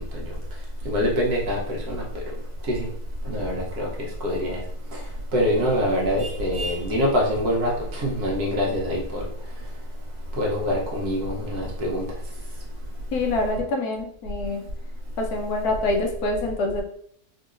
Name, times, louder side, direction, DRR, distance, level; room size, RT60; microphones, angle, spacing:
voice 1, 0.8-2.2 2.7-2.9 3.2-3.9 4.2-4.6 5.3-9.3 10.4-12.1, equal, 70° right, -2 dB, 1.5 m, -24 dB
voice 2, 13.1-14.6 15.2-16.8, left 2 dB, 75° left, 3 dB, 1.1 m, -25 dB
3.8 x 2.7 x 2.5 m, 0.66 s
omnidirectional pair, 1.7 m